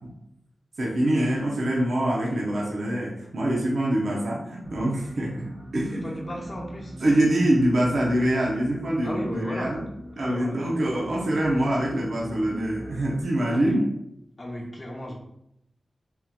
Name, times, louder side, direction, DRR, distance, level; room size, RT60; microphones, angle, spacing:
voice 1, 0.8-6.0 7.0-9.8 10.2-13.8, right 1 dB, 70° right, -3 dB, 0.7 m, -24 dB
sound 1, 4.6-13.2, right 1 dB, 50° right, 1.2 m, -42 dB
voice 2, 5.9-7.0 9.0-9.9 10.2-10.6 13.5-13.8 14.4-15.1, equal, 35° left, -2 dB, 0.9 m, -35 dB
3.6 x 2.9 x 2.3 m, 0.79 s
wide cardioid pair, 85°, 0 cm